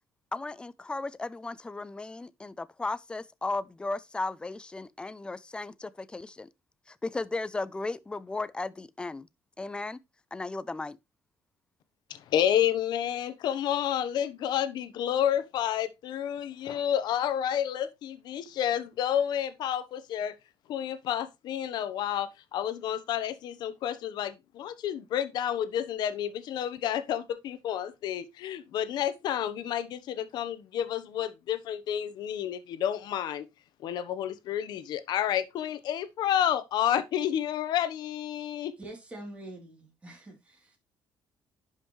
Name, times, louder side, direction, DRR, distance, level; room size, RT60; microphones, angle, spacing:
voice 1, 0.3-6.5 6.9-9.3 9.6-10.0 10.3-11.0, left 3 dB, 10° left, 0.5 m, -35 dB
voice 2, 12.1-20.3 20.7-33.4 33.8-38.7, left 10 dB, 70° left, 1.0 m, -30 dB
voice 3, 38.8-40.8, right 1 dB, 15° right, 3.3 m, -45 dB
10.5 x 5.6 x 3.2 m
cardioid pair, 145°, 8 cm